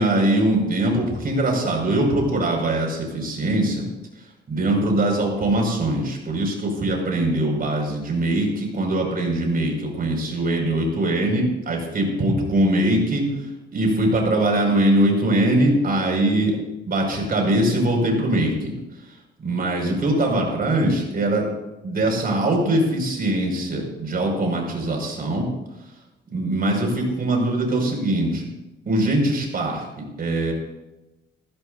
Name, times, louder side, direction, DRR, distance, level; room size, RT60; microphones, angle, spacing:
voice 1, 0.0-3.9 4.5-13.3 13.7-16.6 16.9-18.7 19.4-21.4 21.8-25.5 26.3-28.5 28.9-30.5, right 1 dB, 50° right, 1 dB, 5.9 m, -22 dB
21.0 x 15.0 x 2.7 m, 1.0 s
cardioid pair, 90°, 20 cm